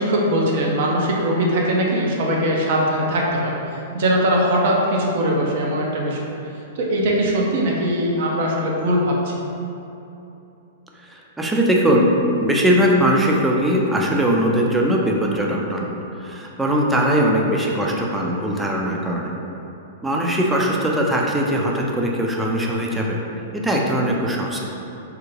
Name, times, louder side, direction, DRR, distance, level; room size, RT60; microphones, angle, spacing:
voice 1, 0.0-6.3 6.7-9.3, equal, 65° right, -2 dB, 0.6 m, -21 dB
voice 2, 11.4-12.1 12.4-15.8 16.2-19.3 20.0-23.2 23.5-24.6, equal, 10° right, -1 dB, 0.4 m, -20 dB
3.5 x 2.1 x 3.1 m, 2.9 s
hypercardioid pair, 120°, 0 cm